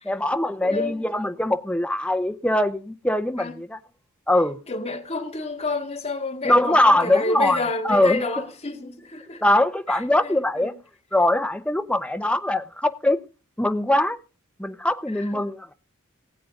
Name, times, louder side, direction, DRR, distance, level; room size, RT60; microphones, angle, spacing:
voice 1, 0.0-3.8 4.3-4.6 6.4-7.6 7.8-8.2 9.4-10.7 11.1-13.2 13.6-14.2 14.6-15.7, left 1 dB, 5° left, 0.9 m, -22 dB
voice 2, 0.6-1.0 3.4-3.5 4.7-9.4 9.9-10.7 15.1-15.5, left 3 dB, 30° left, 2.4 m, -30 dB
20.0 x 8.6 x 3.8 m
head